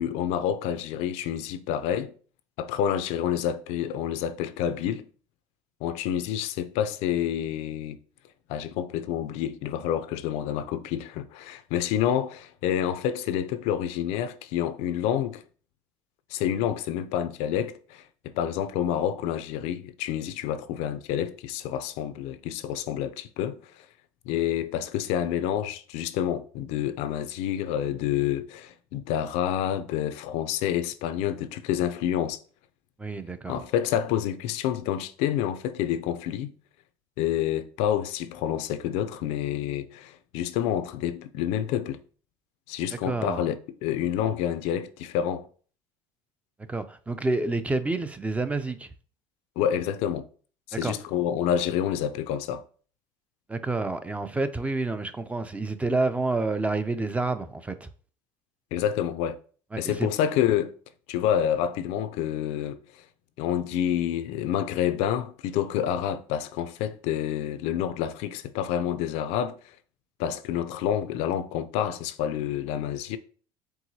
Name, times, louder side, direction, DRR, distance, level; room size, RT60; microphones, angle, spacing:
voice 1, 0.0-2.1 2.6-5.1 5.8-8.0 8.5-15.4 16.3-23.8 24.3-32.4 33.5-36.5 37.2-42.0 42.7-43.6 43.8-45.5 49.6-50.3 50.7-52.6 58.7-59.4 59.8-60.7 61.1-62.8 63.4-69.7 70.2-73.2, left 10 dB, 75° left, 0.4 m, -28 dB
voice 2, 33.0-33.6 43.0-43.4 46.7-48.9 50.8-50.9 53.5-57.9 59.7-60.1, right 3 dB, 10° right, 0.4 m, -28 dB
4.7 x 3.6 x 2.7 m
supercardioid pair, 105°, 11 cm